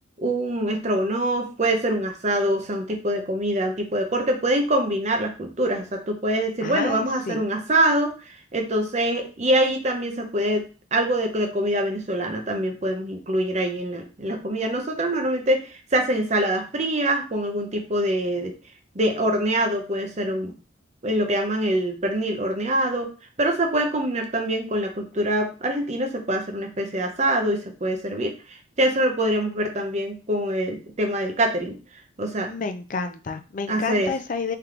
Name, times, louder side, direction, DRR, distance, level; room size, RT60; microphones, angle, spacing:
voice 1, 0.2-8.1 8.5-10.6 10.9-18.5 18.9-20.5 21.0-23.1 23.4-28.3 28.8-31.8 32.2-32.5 33.7-34.1, right 1 dB, 35° right, 3 dB, 0.8 m, -24 dB
voice 2, 6.6-7.4 32.5-34.6, left 4 dB, 45° left, 8 dB, 0.4 m, -30 dB
3.3 x 3.0 x 3.7 m, 0.34 s
head